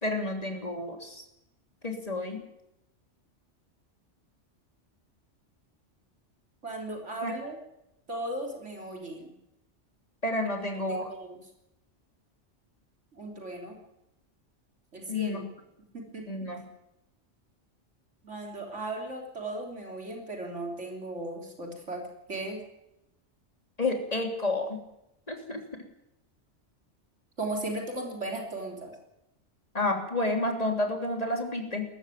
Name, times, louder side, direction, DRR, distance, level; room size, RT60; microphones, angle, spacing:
voice 1, 0.0-1.2 1.8-2.4 7.2-7.3 10.2-11.1 15.1-15.4 16.3-16.6 23.8-24.8 25.3-25.6 29.7-31.9, left 2 dB, 30° left, 2 dB, 3.3 m, -30 dB
voice 2, 6.6-7.6 8.1-9.3 10.7-11.4 13.1-13.8 14.9-15.4 15.9-16.2 18.2-22.0 22.3-22.6 27.4-28.9, right 2 dB, 75° right, 0 dB, 3.7 m, -36 dB
19.0 x 14.5 x 9.2 m, 0.88 s
omnidirectional pair, 1.2 m